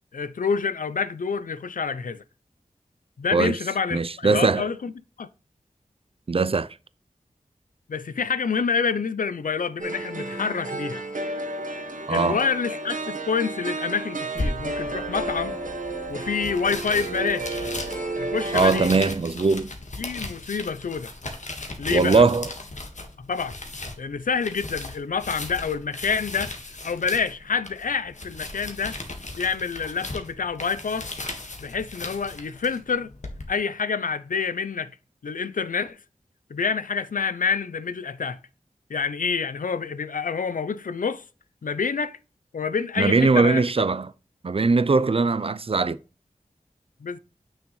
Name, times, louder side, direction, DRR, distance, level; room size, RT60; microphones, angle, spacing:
voice 1, 0.1-2.2 3.2-4.9 5.2-5.3 7.9-11.0 12.1-15.6 16.1-17.7 18.2-18.9 20.0-21.1 21.8-22.3 23.2-23.6 24.0-26.5 26.8-29.0 29.4-31.1 31.6-33.1 33.5-35.0 35.2-36.0 36.5-38.4 38.9-41.2 41.6-42.2 42.5-43.6 47.0-47.2, left 5 dB, 80° left, 0.6 m, -27 dB
voice 2, 3.9-4.7 6.3-6.7 12.1-12.4 18.5-19.7 21.9-22.5 43.0-44.1 44.4-46.0, right 4 dB, 45° right, 0.5 m, -20 dB
sound 1, 9.8-19.1, right 2 dB, 80° right, 1.7 m, -32 dB
sound 2, 14.4-33.5, left 2 dB, 60° left, 1.6 m, -37 dB
7.1 x 6.3 x 3.2 m
cardioid pair, 40°, 14 cm